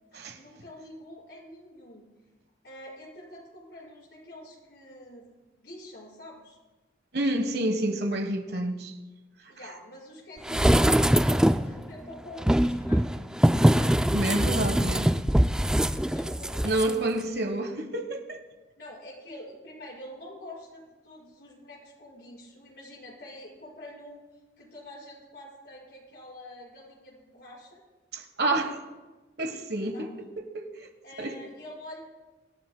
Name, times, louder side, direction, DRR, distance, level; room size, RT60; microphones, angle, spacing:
voice 1, 0.1-2.1 2.6-5.3 5.6-6.6 9.5-13.3 13.7-14.1 16.0-16.9 18.8-24.2 24.6-27.8 29.9-30.1 31.0-32.0, left 1 dB, 70° left, -4 dB, 5.8 m, -46 dB
voice 2, 7.1-8.9 14.1-15.1 16.6-18.4 28.1-28.8 29.4-30.3 30.5-30.9 31.2-31.4, right 1 dB, 65° right, 7 dB, 1.3 m, -29 dB
sound 1, 10.5-11.7 12.4-16.9 17.2-17.3, equal, 5° right, 0.3 m, -22 dB
25.0 x 14.0 x 2.2 m, 1.2 s
head